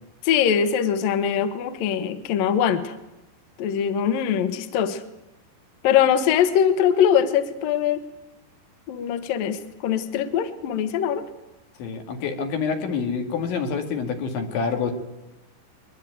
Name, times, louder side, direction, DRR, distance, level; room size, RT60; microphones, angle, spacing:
voice 1, 0.2-2.9 3.6-5.0 5.8-8.0 8.9-11.3, left 8 dB, 60° left, 10 dB, 2.6 m, -22 dB
voice 2, 11.8-14.9, left 5 dB, 90° left, 5 dB, 4.7 m, -27 dB
22.0 x 21.5 x 9.3 m, 0.93 s
omnidirectional pair, 5.2 m